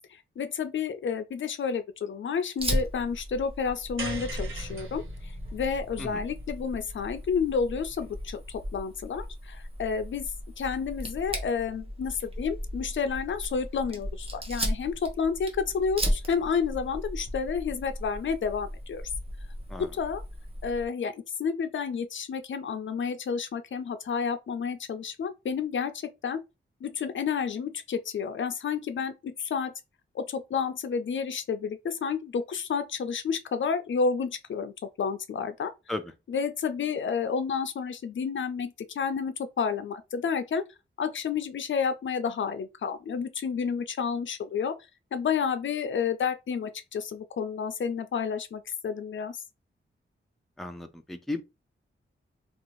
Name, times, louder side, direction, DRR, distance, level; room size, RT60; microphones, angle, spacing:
voice 1, 0.4-5.0 5.5-10.3 10.6-19.0 19.8-20.2 20.6-25.9 26.2-26.4 26.8-29.7 30.1-34.7 35.0-35.7 36.3-40.6 41.0-44.7 45.1-49.4, left 6 dB, 65° left, 0.4 m, -30 dB
Fire, 2.6-20.9, equal, 25° right, 0.8 m, -36 dB
sound 1, 4.0-8.4, right 3 dB, 70° right, 1.0 m, -41 dB
voice 2, 50.6-51.4, left 2 dB, ahead, 0.4 m, -35 dB
2.7 x 2.4 x 2.9 m
wide cardioid pair, 85°, 21 cm